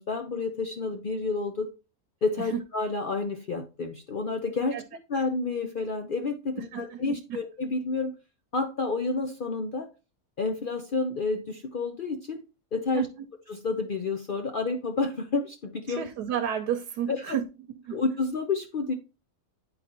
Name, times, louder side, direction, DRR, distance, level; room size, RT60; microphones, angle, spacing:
voice 1, 0.0-1.7 2.2-8.1 8.5-9.9 10.4-12.4 12.7-13.1 13.5-16.0 17.1-17.4 17.9-18.9, left 3 dB, 65° left, 0.5 m, -30 dB
voice 2, 6.6-7.2 12.9-13.2 15.9-17.4 17.7-18.0, right 9 dB, 90° right, 1.2 m, -32 dB
10.5 x 4.0 x 2.8 m
omnidirectional pair, 1.6 m